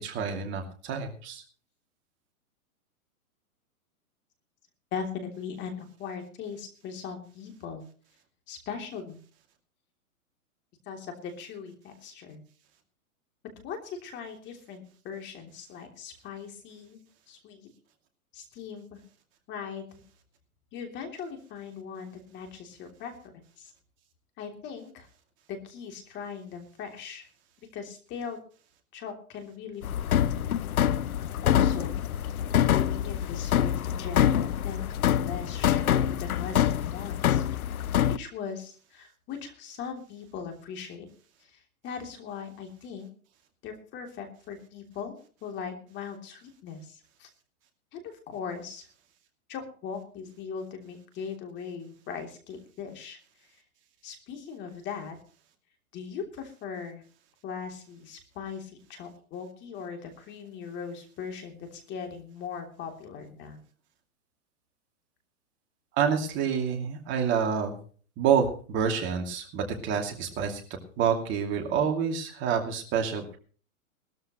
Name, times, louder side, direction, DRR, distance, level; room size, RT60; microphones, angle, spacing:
voice 1, 0.0-1.4 66.0-67.8 68.2-70.6 71.0-73.4, right 7 dB, 25° right, 3 dB, 2.6 m, -28 dB
voice 2, 4.9-7.9 8.5-9.2 10.9-12.4 13.6-17.7 18.3-19.0 19.5-20.0 20.7-23.1 23.6-23.7 24.4-25.1 25.5-27.3 27.7-28.4 28.9-30.3 31.4-32.0 32.6-37.4 38.0-41.1 41.4-43.1 43.6-47.3 47.9-48.9 49.5-53.2 54.0-55.2 55.9-57.0 57.4-63.6, left 6 dB, 25° left, 4 dB, 3.1 m, -39 dB
sound 1, 29.8-38.2, left 10 dB, 75° left, 0.9 m, -25 dB
20.5 x 13.5 x 3.1 m, 0.41 s
hypercardioid pair, 145°, 43 cm